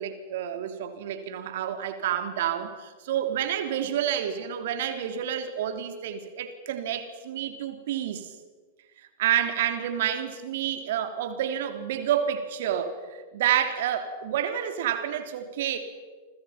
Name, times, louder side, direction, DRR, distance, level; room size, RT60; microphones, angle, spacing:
voice 1, 0.0-8.3 9.2-15.8, right 10 dB, 60° right, 8 dB, 3.2 m, -29 dB
29.5 x 25.5 x 5.8 m, 1.4 s
figure-of-eight pair, 100°, 0 cm